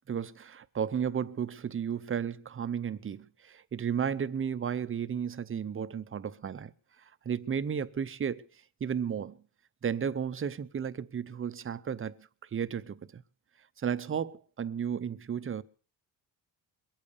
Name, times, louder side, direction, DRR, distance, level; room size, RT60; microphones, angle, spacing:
voice 1, 0.1-6.7 7.2-8.4 8.8-9.4 9.8-12.2 12.5-13.2 13.8-15.6, right 7 dB, 30° right, 0.7 m, -33 dB
22.5 x 8.7 x 6.6 m
cardioid pair, 145°, 43 cm